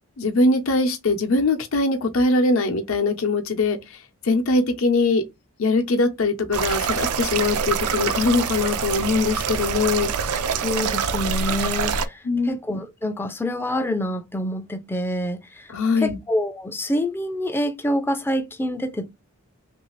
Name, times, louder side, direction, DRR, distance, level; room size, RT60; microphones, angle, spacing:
voice 1, 0.2-3.8 4.2-5.2 5.6-10.1 12.2-12.6 15.7-16.2, left 3 dB, 70° left, 0.7 m, -21 dB
sound 1, 6.5-12.1, right 6 dB, 90° right, 0.4 m, -25 dB
voice 2, 10.6-19.1, left 1 dB, 10° left, 0.3 m, -27 dB
3.2 x 2.6 x 3.0 m
head